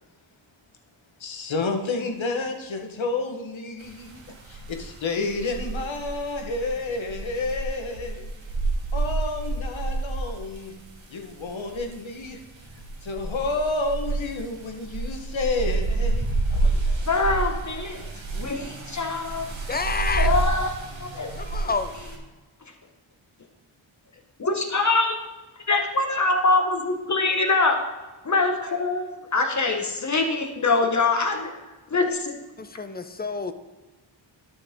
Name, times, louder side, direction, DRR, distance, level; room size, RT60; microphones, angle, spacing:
voice 1, 1.2-8.3 8.9-10.7 11.1-12.4 12.8-17.2 18.1-18.2, left 3 dB, 65° left, 3 dB, 1.3 m, -30 dB
sound 1, 3.8-22.2, right 3 dB, 65° right, 1.7 m, -30 dB
voice 2, 17.1-18.0 18.3-19.5 20.2-21.3 24.4-25.2 25.7-27.8 28.2-31.5 31.9-32.4, left 3 dB, 35° left, 4 dB, 1.3 m, -24 dB
voice 3, 19.7-20.3 21.3-21.9 32.6-33.5, left 4 dB, 20° left, 11 dB, 0.6 m, -28 dB
11.5 x 6.3 x 3.6 m, 1.2 s
wide cardioid pair, 75°, 50 cm